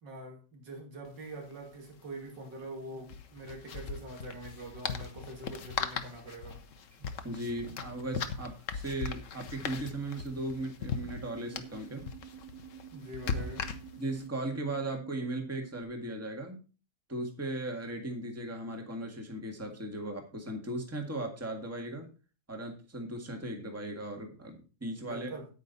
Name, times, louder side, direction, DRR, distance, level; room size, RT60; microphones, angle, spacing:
voice 1, 0.0-6.6 12.9-13.7 25.0-25.5, right 2 dB, 85° right, 3.0 m, -44 dB
sound 1, 1.0-1.1 1.4-1.5 3.0-14.2, left 6 dB, 55° left, 1.1 m, -39 dB
voice 2, 7.0-12.1 14.0-16.6 17.1-22.1 22.5-25.3, right 1 dB, 10° right, 1.7 m, -37 dB
sound 2, 10.8-15.8, right 11 dB, 65° right, 1.1 m, -49 dB
9.3 x 8.9 x 4.1 m
omnidirectional pair, 1.9 m